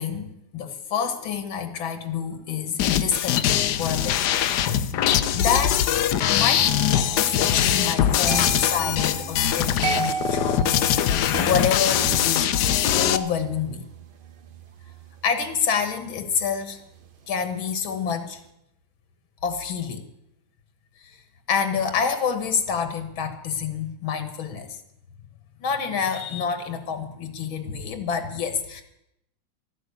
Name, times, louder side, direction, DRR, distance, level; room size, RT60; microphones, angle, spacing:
voice 1, 0.0-11.0 11.4-12.5 12.9-13.9 15.2-16.8 17.3-18.4 19.4-20.0 21.0-21.2 21.5-24.8 25.6-28.8, left 7 dB, 85° left, 8 dB, 2.2 m, -28 dB
sound 1, 2.8-13.2, left 10 dB, 70° left, 1.1 m, -22 dB
sound 2, 6.6-17.5 17.8-18.2, right 6 dB, 85° right, 0.4 m, -35 dB
13.5 x 9.6 x 8.3 m, 0.80 s
omnidirectional pair, 2.1 m